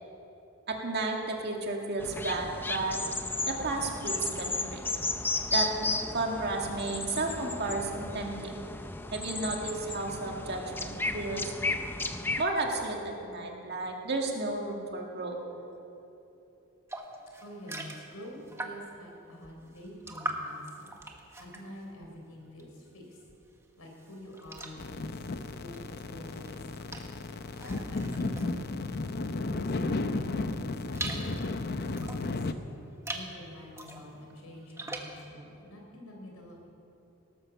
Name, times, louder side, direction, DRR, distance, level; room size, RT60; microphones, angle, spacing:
voice 1, 0.7-3.0 3.5-4.8 5.5-8.6 9.1-11.5 12.4-15.4, right 2 dB, 50° right, 1 dB, 2.2 m, -33 dB
sound 1, 2.0-12.4, left 3 dB, 10° left, 0.5 m, -34 dB
sound 2, 16.9-19.0 19.4-22.9 23.2-29.5 30.0-32.4 32.9-33.3 33.7-35.2, right 2 dB, 10° right, 1.1 m, -42 dB
voice 2, 17.4-20.9 21.4-23.2 23.8-25.2 25.5-27.0 27.6-30.6 30.9-32.5 33.1-36.7, left 1 dB, 90° left, 0 dB, 4.1 m, -47 dB
sound 3, 24.8-32.5, left 3 dB, 45° left, 0.7 m, -34 dB
18.5 x 11.0 x 7.1 m, 2.9 s
head